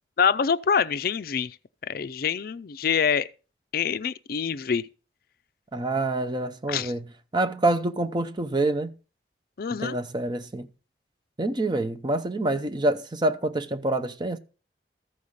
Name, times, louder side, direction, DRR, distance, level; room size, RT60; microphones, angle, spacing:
voice 1, 0.2-1.5 1.9-3.3 3.7-4.8 6.7-6.9 9.6-10.0, left 6 dB, 55° left, 0.4 m, -25 dB
voice 2, 5.7-7.1 7.3-8.9 9.7-10.7 11.4-14.4, right 2 dB, 25° right, 0.7 m, -26 dB
14.0 x 5.5 x 6.5 m
head